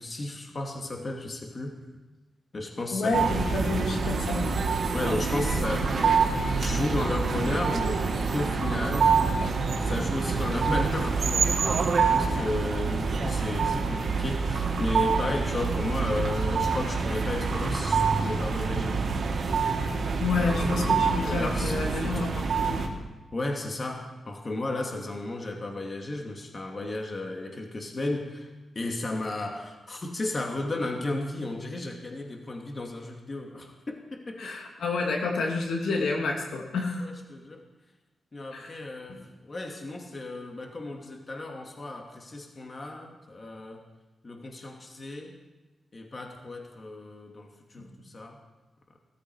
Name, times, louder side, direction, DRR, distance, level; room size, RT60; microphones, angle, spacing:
voice 1, 0.0-1.7 2.5-3.4 4.9-5.9 6.5-8.0 8.3-9.2 9.8-11.8 12.1-19.0 20.3-22.2 23.3-28.5 28.7-34.6 37.0-37.6 38.3-43.8 44.2-45.3 45.9-48.4, left 2 dB, 35° left, 1 dB, 2.5 m, -34 dB
voice 2, 2.9-4.5 20.2-22.8 34.4-37.0 38.5-38.8 47.8-47.9, left 3 dB, 85° left, 0 dB, 2.9 m, -29 dB
sound 1, 3.1-22.9, right 5 dB, 65° right, 2.5 m, -26 dB
19.0 x 14.0 x 4.9 m, 1.2 s
cardioid pair, 85°, 0 cm